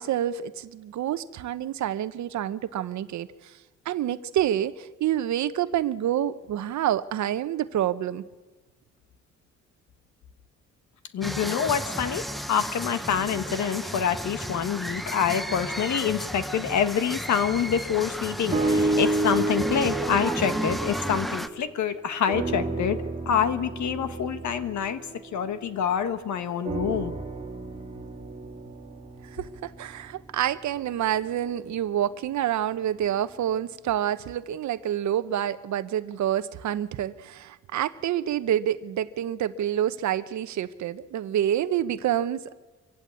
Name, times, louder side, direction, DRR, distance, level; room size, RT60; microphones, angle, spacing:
voice 1, 0.0-3.5 3.8-8.2 29.3-42.5, right 11 dB, 70° right, 13 dB, 0.9 m, -28 dB
voice 2, 11.1-23.0 23.2-25.0 25.3-27.1, left 8 dB, 70° left, 10 dB, 1.4 m, -26 dB
sound 1, 11.2-21.5, equal, ahead, 0.7 m, -33 dB
sound 2, 18.5-21.9 22.3-26.0 26.6-30.9 31.5-31.6, right 3 dB, 20° right, 2.2 m, -31 dB
24.0 x 16.0 x 8.4 m, 1.3 s
cardioid pair, 90°, 30 cm